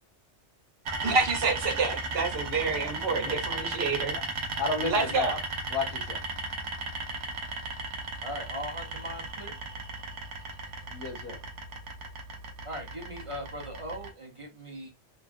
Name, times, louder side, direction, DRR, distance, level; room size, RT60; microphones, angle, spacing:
sound 1, 0.8-14.1, right 3 dB, 80° right, 0.9 m, -36 dB
voice 1, 1.0-4.1 4.9-5.4, right 4 dB, 55° right, 1.0 m, -28 dB
voice 2, 2.7-3.4 4.6-5.4 5.7-6.2 10.9-11.4, left 3 dB, 20° left, 1.1 m, -33 dB
voice 3, 8.2-9.6 12.6-14.9, equal, 35° right, 0.5 m, -39 dB
3.0 x 2.3 x 2.5 m
omnidirectional pair, 1.2 m